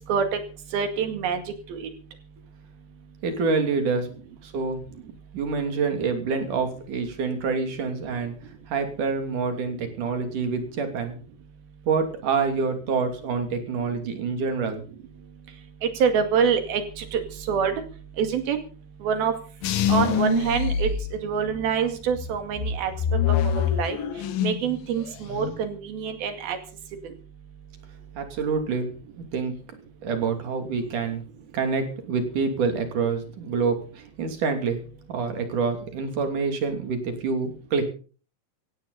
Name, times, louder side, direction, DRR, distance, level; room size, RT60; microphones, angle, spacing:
voice 1, 0.7-1.4 1.7-1.9 16.0-17.2 17.5-17.7 18.2-18.6 19.0-19.3 19.9-20.9 21.2-22.9 23.3-24.0 24.4-26.6, right 7 dB, 70° right, 7 dB, 4.0 m, -25 dB
voice 2, 3.2-4.1 4.4-4.8 5.3-8.3 8.7-11.2 11.9-14.8 28.2-28.9 29.3-29.6 30.0-31.2 31.5-34.8 35.1-37.8, right 5 dB, 55° right, 6 dB, 4.1 m, -26 dB
sound 1, 19.6-21.7 22.1-24.7 25.0-25.6, left 7 dB, 70° left, 2.9 m, -25 dB
17.0 x 17.0 x 4.1 m, 0.39 s
omnidirectional pair, 4.6 m